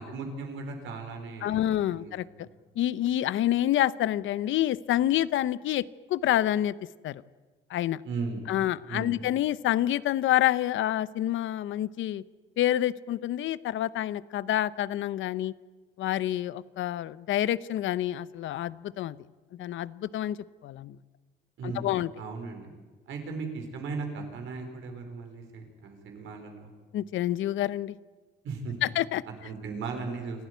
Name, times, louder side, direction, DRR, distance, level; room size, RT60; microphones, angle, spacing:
voice 1, 0.0-2.1 2.4-2.5 8.0-8.5 8.9-9.2 21.6-22.7 23.1-26.7 28.4-28.7 29.4-30.5, right 4 dB, 80° right, 5 dB, 4.7 m, -37 dB
voice 2, 1.4-2.5 2.8-6.7 7.0-7.2 7.7-8.0 8.5-12.2 12.6-15.5 16.0-19.2 19.6-20.4 20.6-21.0 21.6-22.1 26.9-27.9 28.8-29.2, left 13 dB, 80° left, 17 dB, 0.7 m, -28 dB
28.0 x 12.5 x 9.4 m, 1.3 s
cardioid pair, 90°, 20 cm